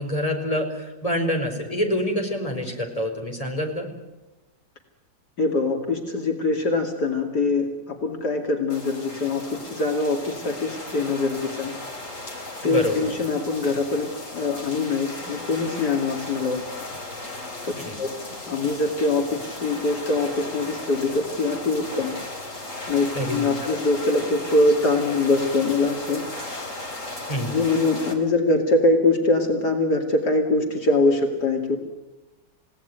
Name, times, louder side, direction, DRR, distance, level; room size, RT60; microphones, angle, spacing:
voice 1, 0.0-3.9 12.6-13.1 17.9-18.0 23.1-23.8 27.3-27.6, equal, 20° left, 2 dB, 4.6 m, -26 dB
voice 2, 5.4-11.7 12.6-16.6 17.6-18.1 18.5-22.1 22.9-26.2 27.5-31.8, left 2 dB, 65° left, 3 dB, 3.0 m, -23 dB
sound 1, 8.7-28.1, left 2 dB, 45° left, 4.4 m, -36 dB
29.5 x 17.5 x 9.3 m, 1.1 s
omnidirectional pair, 1.9 m